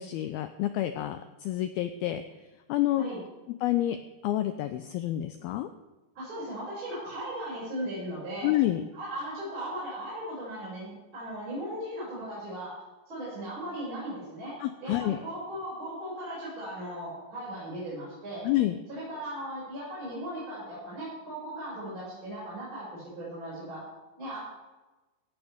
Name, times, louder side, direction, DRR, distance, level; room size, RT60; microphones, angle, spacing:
voice 1, 0.0-2.2 2.7-3.0 3.6-5.7 8.4-8.8 14.6-15.2 18.4-18.8, left 14 dB, 90° left, 9 dB, 2.2 m, -28 dB
voice 2, 6.2-8.6 8.9-12.8 13.1-18.5 18.9-23.9 24.2-24.4, right 1 dB, 25° right, -8 dB, 7.1 m, -37 dB
17.0 x 16.0 x 3.6 m, 1.1 s
omnidirectional pair, 5.2 m